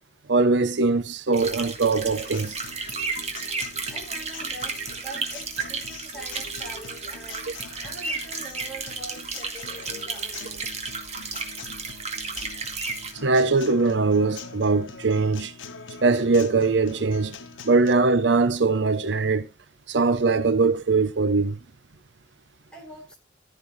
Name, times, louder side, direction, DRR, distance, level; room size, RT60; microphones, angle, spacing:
voice 1, 0.3-2.6 13.2-15.5 16.0-17.4 17.7-19.5 19.9-21.6, right 3 dB, 70° right, 0.7 m, -21 dB
sound 1, 1.3-13.1, right 4 dB, 35° right, 2.2 m, -33 dB
Acoustic guitar, 1.9-17.9, left 5 dB, 90° left, 1.3 m, -43 dB
voice 2, 3.9-7.5 7.8-10.7 22.7-23.2, right 1 dB, 5° left, 5.1 m, -43 dB
14.5 x 6.8 x 4.1 m
head